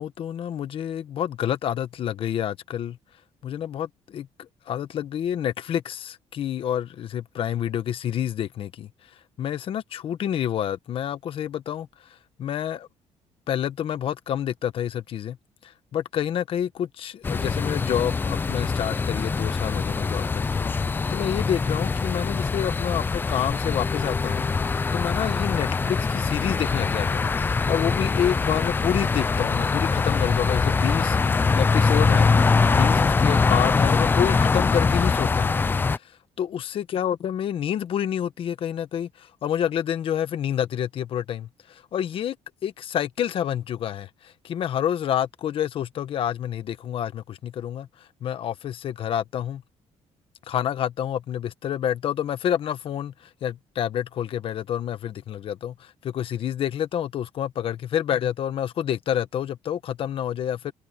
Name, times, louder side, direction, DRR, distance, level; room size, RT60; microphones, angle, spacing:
voice 1, 0.0-3.0 3.4-8.9 9.4-12.9 13.5-15.4 15.6-32.3 32.7-35.6 36.0-42.4 42.6-49.6 50.5-60.7, left 10 dB, 50° left, 1.2 m, -28 dB
sound 1, 17.2-36.0, left 4 dB, 15° left, 0.5 m, -23 dB
cardioid pair, 165°, 12 cm